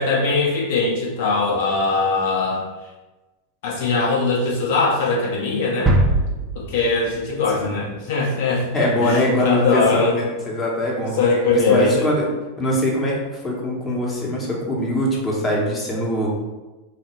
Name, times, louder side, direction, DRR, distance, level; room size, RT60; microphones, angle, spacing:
voice 1, 0.0-2.6 3.6-5.9 6.5-10.1 11.0-12.1, left 3 dB, 55° left, -4 dB, 0.9 m, -21 dB
sound 1, 5.9-7.7 8.0-8.1, right 2 dB, 15° right, 0.8 m, -22 dB
voice 2, 8.7-11.1 11.5-12.3 12.6-16.3, left 1 dB, 15° left, -4 dB, 1.3 m, -22 dB
4.0 x 2.8 x 4.5 m, 1.1 s
figure-of-eight pair, 90°, 0 cm